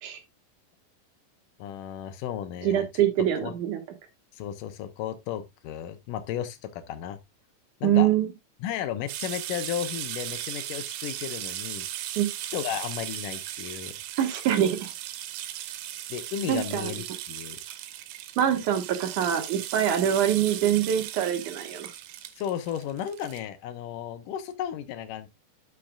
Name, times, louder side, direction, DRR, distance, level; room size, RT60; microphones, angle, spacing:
voice 1, 1.6-2.9 3.4-3.5 4.3-7.2 7.8-8.1 8.6-12.0 12.5-13.9 16.1-17.6 22.3-25.3, left 10 dB, 75° left, 2.2 m, -34 dB
voice 2, 2.6-3.8 7.8-8.3 12.2-12.3 14.2-14.9 16.5-16.9 18.4-21.9, right 10 dB, 70° right, 2.6 m, -24 dB
sound 1, 9.1-23.4, right 12 dB, 90° right, 2.6 m, -37 dB
11.5 x 6.0 x 2.3 m
omnidirectional pair, 4.0 m